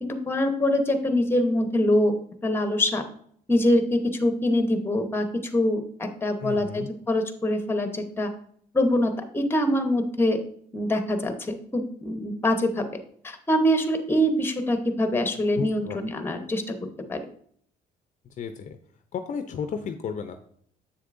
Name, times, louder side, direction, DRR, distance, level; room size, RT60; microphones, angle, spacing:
voice 1, 0.0-2.1 2.4-3.0 3.5-8.3 8.7-10.4 10.7-12.9 13.2-16.7 17.1-17.2, left 1 dB, 15° left, 7 dB, 0.9 m, -24 dB
voice 2, 6.4-6.9 15.6-16.0 18.4-18.8 19.1-20.3, left 6 dB, 45° left, 8 dB, 0.5 m, -33 dB
7.6 x 6.5 x 2.6 m, 0.62 s
cardioid pair, 110°, 17 cm